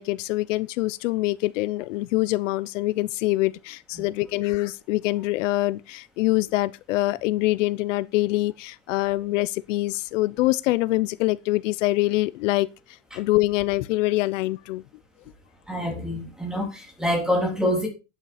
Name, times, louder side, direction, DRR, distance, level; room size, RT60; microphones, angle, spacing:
voice 1, 0.0-14.8, left 18 dB, 75° left, 0.8 m, -25 dB
voice 2, 15.7-17.9, equal, ahead, 3.3 m, -26 dB
12.0 x 9.0 x 4.3 m
supercardioid pair, 160°, 38 cm